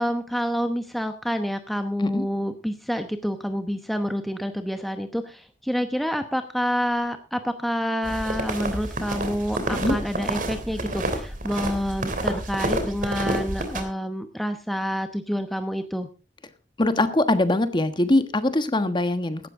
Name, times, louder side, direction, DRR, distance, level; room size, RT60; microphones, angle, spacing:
voice 1, 0.0-16.1, equal, ahead, 7 dB, 0.9 m, -28 dB
sound 1, 8.0-13.8, right 1 dB, 50° right, 3.1 m, -29 dB
voice 2, 16.8-19.5, left 1 dB, 25° left, 10 dB, 1.3 m, -22 dB
16.5 x 12.5 x 3.7 m, 0.32 s
head